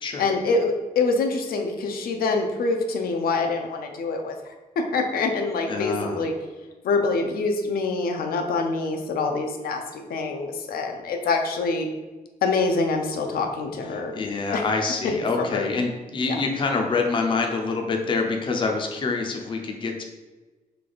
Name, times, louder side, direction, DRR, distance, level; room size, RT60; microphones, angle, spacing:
voice 1, 0.2-6.3 6.8-11.9 12.4-14.2 14.5-14.6 15.0-15.6 16.3-16.4, left 3 dB, 85° left, 4 dB, 0.6 m, -25 dB
voice 2, 5.7-6.2 14.1-20.0, left 4 dB, 35° left, 3 dB, 0.5 m, -26 dB
3.4 x 3.3 x 3.9 m, 1.2 s
wide cardioid pair, 165°, 15 cm